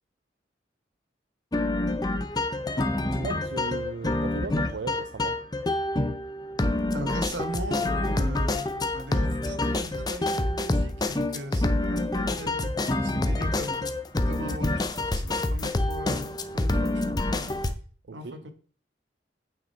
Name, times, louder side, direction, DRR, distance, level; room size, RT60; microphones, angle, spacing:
sound 1, 1.5-17.7, left 2 dB, 20° left, 0.6 m, -27 dB
voice 1, 3.1-5.4 18.1-18.5, right 4 dB, 65° right, 0.5 m, -37 dB
voice 2, 6.9-14.0 14.2-17.7 18.1-18.5, right 1 dB, 85° right, 1.3 m, -39 dB
8.6 x 6.0 x 4.4 m
head